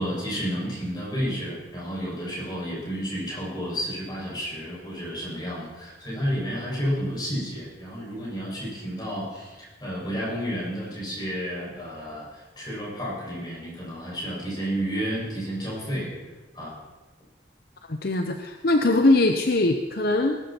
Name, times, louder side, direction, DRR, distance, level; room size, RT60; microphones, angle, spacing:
voice 1, 0.0-16.1 16.5-16.8, equal, 25° left, -6 dB, 6.9 m, -31 dB
voice 2, 17.9-20.4, left 2 dB, 60° left, 5 dB, 0.8 m, -21 dB
20.5 x 12.5 x 4.5 m, 1.2 s
head